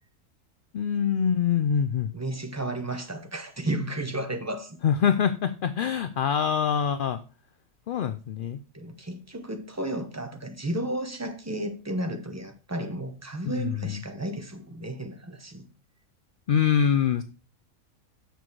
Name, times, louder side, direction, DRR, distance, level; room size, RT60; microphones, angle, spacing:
voice 1, 0.7-2.1 4.8-7.2 7.9-8.6 13.5-14.0 16.5-17.2, left 7 dB, 70° left, 0.5 m, -24 dB
voice 2, 2.1-4.8 8.7-15.7, right 1 dB, 15° right, 0.8 m, -33 dB
7.0 x 6.1 x 4.6 m
omnidirectional pair, 1.4 m